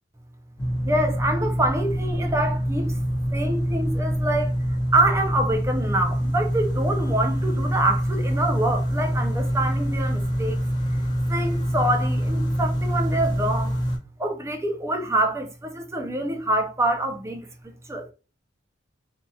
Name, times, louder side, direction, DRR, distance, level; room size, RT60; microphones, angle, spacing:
sound 1, 0.6-14.0, equal, 25° left, 0.8 m, -25 dB
voice 1, 0.8-3.0 3.3-4.5 4.9-10.6 11.3-13.8 14.2-18.1, right 1 dB, 15° right, 0.5 m, -26 dB
2.7 x 2.7 x 2.2 m
head